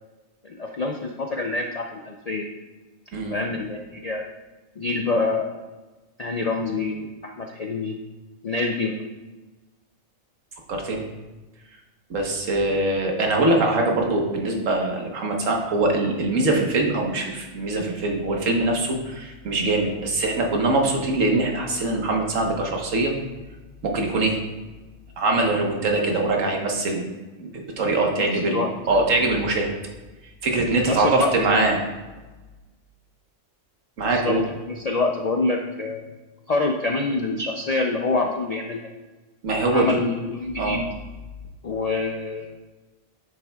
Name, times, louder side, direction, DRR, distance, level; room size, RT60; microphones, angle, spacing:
voice 1, 0.4-2.5 3.3-4.2 4.8-5.5 6.2-7.9 8.4-8.9 28.2-29.0 30.9-31.7 34.0-34.4 34.7-36.0 36.5-38.9 39.7-40.9 41.6-42.5, left 3 dB, 65° left, 2 dB, 0.4 m, -26 dB
voice 2, 10.7-11.0 12.1-23.1 23.8-24.4 25.2-27.1 27.4-29.7 30.4-31.8 34.0-34.4 39.4-40.0 40.6-40.8, right 2 dB, 85° right, 1 dB, 1.5 m, -23 dB
9.0 x 6.7 x 2.3 m, 1.2 s
omnidirectional pair, 1.3 m